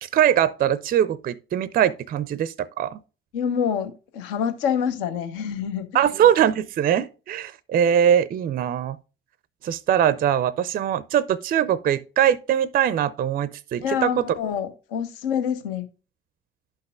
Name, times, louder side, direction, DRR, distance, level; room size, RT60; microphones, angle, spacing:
voice 1, 0.0-3.0 5.9-9.0 9.6-14.3, right 10 dB, 30° right, 0.4 m, -22 dB
voice 2, 3.3-5.9 13.8-15.9, left 8 dB, 70° left, 0.9 m, -26 dB
11.5 x 5.7 x 2.3 m
figure-of-eight pair, 50°, 29 cm